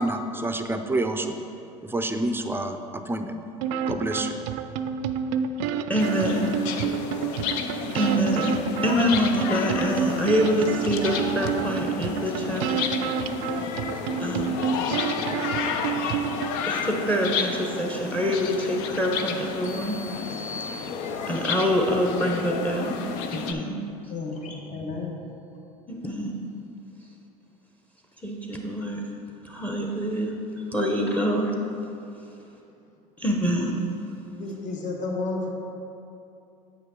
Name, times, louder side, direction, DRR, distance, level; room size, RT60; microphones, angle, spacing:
voice 1, 0.0-1.3 1.8-3.3 3.9-4.4, right 2 dB, 15° right, 7 dB, 0.5 m, -28 dB
sound 1, 3.6-16.6, right 7 dB, 70° right, 0.4 m, -29 dB
voice 2, 5.9-6.5 7.9-12.7 14.2-14.7 16.7-20.0 21.3-23.0 23.3-23.8 25.9-26.4 28.2-29.0 29.4-31.5 33.2-33.8, equal, 10° left, 1 dB, 0.9 m, -25 dB
sound 2, 6.0-23.5, left 6 dB, 70° left, 0.6 m, -31 dB
sound 3, 19.6-21.5, left 2 dB, 85° left, 1.4 m, -41 dB
voice 3, 24.1-25.2 34.4-35.5, left 3 dB, 45° left, 0 dB, 1.2 m, -32 dB
8.0 x 5.7 x 3.7 m, 2.7 s
hypercardioid pair, 85°, 17 cm